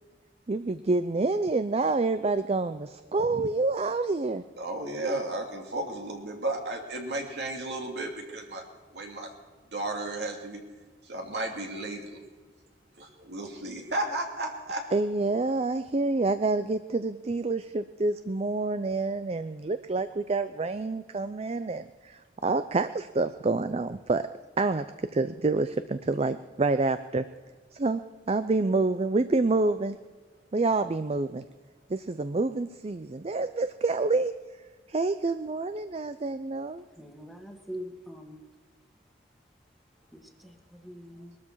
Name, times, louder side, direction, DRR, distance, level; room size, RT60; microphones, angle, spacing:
voice 1, 0.5-4.4 14.9-24.3 24.6-24.8 25.1-27.2 27.7-28.0 28.3-30.0 30.5-31.4 31.9-34.3 34.9-36.8, right 3 dB, 35° right, 11 dB, 0.5 m, -27 dB
voice 2, 4.6-8.6 8.9-9.3 9.7-10.6 11.0-12.2 13.0-14.9, right 2 dB, 70° right, 2 dB, 2.7 m, -33 dB
voice 3, 37.0-38.4 40.1-41.4, equal, ahead, 2 dB, 1.7 m, -43 dB
21.5 x 13.0 x 4.7 m, 1.4 s
head